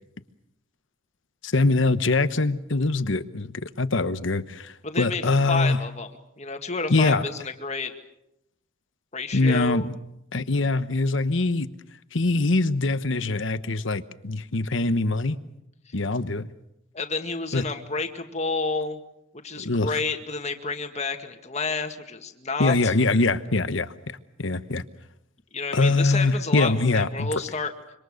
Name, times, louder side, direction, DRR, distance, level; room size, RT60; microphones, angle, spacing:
voice 1, 1.4-5.8 6.9-7.2 9.3-9.9 10.3-11.7 12.1-15.4 15.9-16.5 17.5-17.6 19.6-19.9 22.6-23.9 24.4-24.8 25.7-27.3, left 3 dB, 70° left, 13 dB, 1.1 m, -23 dB
voice 2, 4.8-6.1 6.4-7.9 9.1-9.9 15.9-16.0 16.9-19.0 19.4-22.9 25.5-27.7, left 4 dB, 35° left, 6 dB, 2.0 m, -30 dB
26.5 x 25.0 x 6.5 m, 0.83 s
head